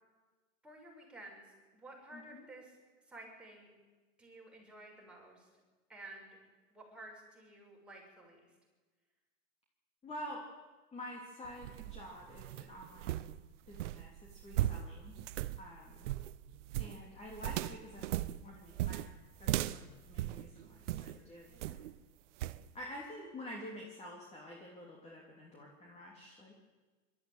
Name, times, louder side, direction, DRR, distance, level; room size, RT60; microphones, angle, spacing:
voice 1, 0.6-2.8 3.1-3.7 4.2-5.5 5.9-6.4 6.7-8.5 21.5-21.8, right 2 dB, 5° right, -3 dB, 6.8 m, -53 dB
voice 2, 2.1-2.4 10.0-10.4 10.9-13.1 13.7-15.2 15.6-16.1 16.8-19.0 19.4-21.8 22.7-26.5, left 1 dB, 15° left, -2 dB, 3.2 m, -48 dB
sound 1, 11.4-21.2 21.6-22.0 22.4-22.6, right 14 dB, 60° right, 0.9 m, -38 dB
21.5 x 13.5 x 9.2 m, 1.3 s
hypercardioid pair, 130°, 40 cm